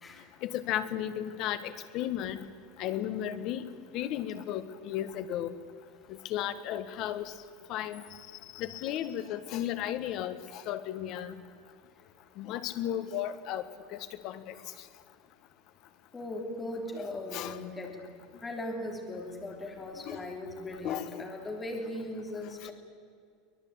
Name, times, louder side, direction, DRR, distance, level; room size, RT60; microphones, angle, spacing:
voice 1, 0.4-2.4 2.8-3.6 3.9-5.5 6.1-7.3 7.7-8.0 8.5-11.3 12.4-13.6 13.9-14.5 17.3-17.6 20.1-20.2 20.8-21.2, left 11 dB, 40° left, 11 dB, 1.4 m, -34 dB
voice 2, 16.1-18.1 18.4-22.7, left 1 dB, 10° left, 3 dB, 3.0 m, -38 dB
24.5 x 19.0 x 8.7 m, 2.3 s
supercardioid pair, 175°, 0 cm